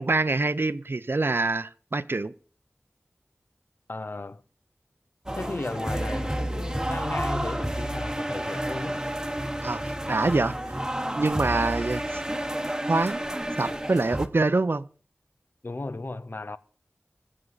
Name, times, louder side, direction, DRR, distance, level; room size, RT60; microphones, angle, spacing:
voice 1, 0.0-2.3 9.6-9.8 10.1-10.8 11.1-12.2 12.9-13.2 13.6-14.9, right 3 dB, 60° right, 0.6 m, -25 dB
voice 2, 3.9-4.4 5.3-9.1 15.6-16.6, left 2 dB, 50° left, 0.6 m, -35 dB
sound 1, 5.3-14.3, right 1 dB, 15° right, 1.0 m, -30 dB
20.0 x 7.7 x 4.0 m
wide cardioid pair, 55°, 4 cm